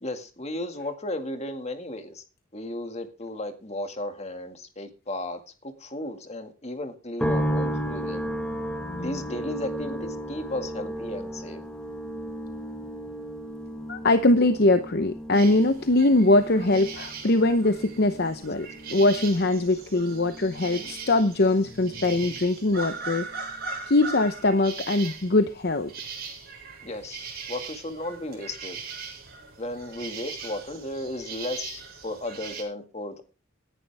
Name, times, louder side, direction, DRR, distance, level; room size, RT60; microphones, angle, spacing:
voice 1, 0.0-2.2 2.5-8.2 9.0-11.6 26.8-28.8 29.6-33.2, left 1 dB, 30° left, 2.0 m, -35 dB
sound 1, 7.2-22.4 22.7-23.6, equal, 5° left, 1.6 m, -35 dB
voice 2, 8.8-9.2 13.9-23.5 23.9-25.9, left 2 dB, 50° left, 0.8 m, -22 dB
sound 2, 15.3-32.6, right 5 dB, 50° right, 7.6 m, -40 dB
17.5 x 11.0 x 3.5 m
head